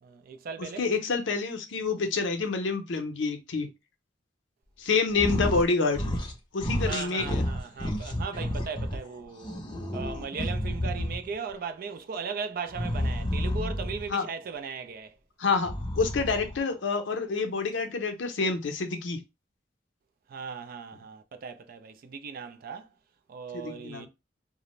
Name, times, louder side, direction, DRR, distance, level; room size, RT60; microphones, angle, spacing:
voice 1, 0.0-0.9 6.8-9.6 9.9-15.1 20.3-22.9 23.3-24.1, right 5 dB, 50° right, 0.3 m, -38 dB
voice 2, 0.8-3.7 4.8-6.2 6.5-7.4 14.1-14.2 15.4-19.2 23.5-24.1, left 4 dB, 70° left, 0.6 m, -28 dB
sound 1, 5.1-5.7 5.9-6.3 6.6-9.0 9.4-11.3 12.7-14.1 15.5-16.6, left 1 dB, 25° left, 0.5 m, -30 dB
2.4 x 2.0 x 3.0 m
head